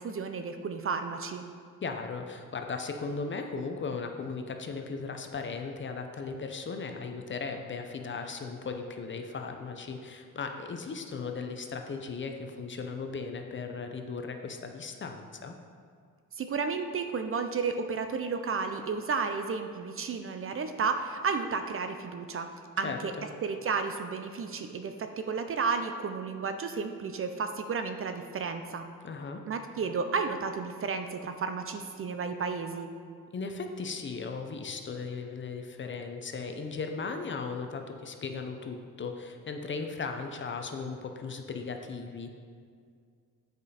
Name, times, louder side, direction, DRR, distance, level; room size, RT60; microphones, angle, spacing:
voice 1, 0.0-1.4 16.4-22.5 22.8-23.1 23.4-28.8 29.5-32.9, right 5 dB, 40° right, 7 dB, 0.5 m, -32 dB
voice 2, 1.8-15.5 22.8-23.3 29.0-29.4 33.3-42.3, left 4 dB, 35° left, 5 dB, 0.6 m, -37 dB
8.0 x 5.1 x 4.2 m, 2.1 s
cardioid pair, 120°, 34 cm